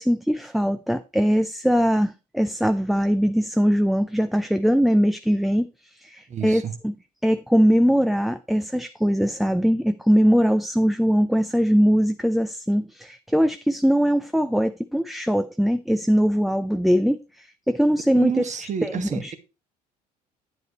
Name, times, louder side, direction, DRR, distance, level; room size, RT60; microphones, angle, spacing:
voice 1, 0.0-6.9 7.2-18.3 18.8-19.3, equal, ahead, 0.5 m, -21 dB
voice 2, 6.3-6.7 18.1-19.4, right 8 dB, 35° right, 1.3 m, -29 dB
9.3 x 7.8 x 3.0 m
figure-of-eight pair, 60°, 20 cm